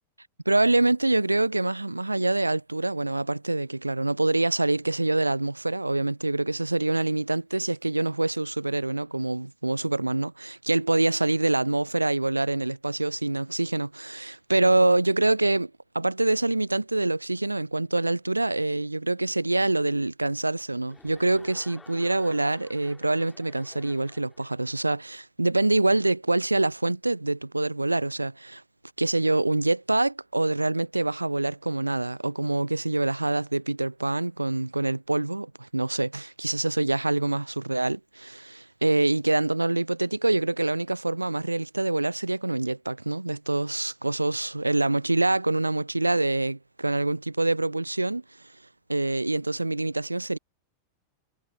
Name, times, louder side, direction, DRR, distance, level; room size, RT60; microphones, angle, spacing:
voice 1, 0.5-28.6 29.0-48.2 48.9-50.4, right 2 dB, 85° right, 0.3 m, -25 dB
Chuckle chortle, 20.9-24.6, left 4 dB, 10° left, 2.5 m, -53 dB
figure-of-eight pair, 90°, 0 cm